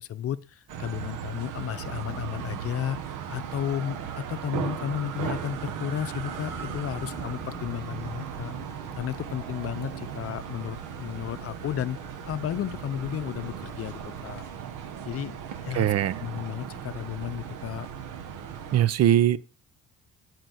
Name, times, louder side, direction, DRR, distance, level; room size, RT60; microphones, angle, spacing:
voice 1, 0.0-4.0 4.3-8.6 9.0-12.0 12.3-14.4 15.0-15.4 15.6-15.9 16.2-17.9, left 10 dB, 50° left, 0.7 m, -33 dB
sound 1, 0.7-18.9, right 8 dB, 85° right, 1.3 m, -37 dB
sound 2, 6.3-14.6, left 2 dB, 10° left, 4.4 m, -48 dB
voice 2, 15.7-16.2 18.7-19.4, right 11 dB, 55° right, 0.7 m, -21 dB
11.5 x 4.5 x 7.9 m
cardioid pair, 105°, 31 cm